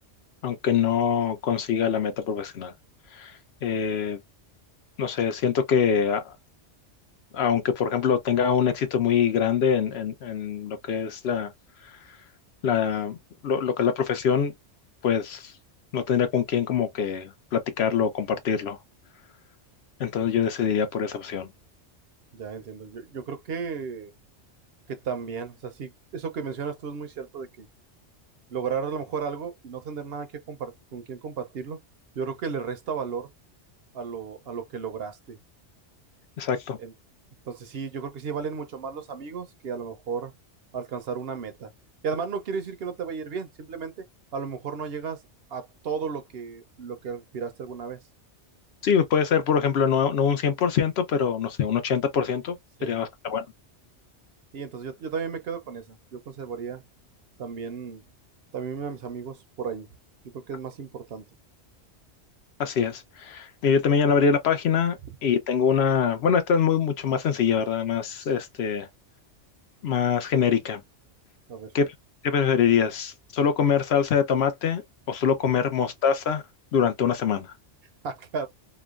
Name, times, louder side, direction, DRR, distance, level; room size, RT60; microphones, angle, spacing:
voice 1, 0.4-2.7 3.1-3.3 3.6-4.2 5.0-6.3 7.3-11.5 12.6-13.2 13.4-14.5 15.0-15.5 15.9-18.8 20.0-21.5 36.4-36.8 48.8-52.6 52.8-53.4 62.6-68.9 69.8-70.8 71.7-71.9 72.2-74.8 75.1-76.4 76.7-77.5, left 7 dB, 65° left, 0.8 m, -24 dB
voice 2, 22.3-24.1 24.9-27.7 28.5-31.8 32.2-33.3 33.9-35.4 36.8-36.9 37.5-40.3 40.7-41.7 42.0-44.0 44.3-45.2 45.5-48.0 52.8-53.0 54.5-56.8 57.4-58.0 58.5-59.9 60.3-61.2 71.5-71.7 78.0-78.5, right 6 dB, 65° right, 0.8 m, -34 dB
3.0 x 2.1 x 2.3 m
omnidirectional pair, 1.2 m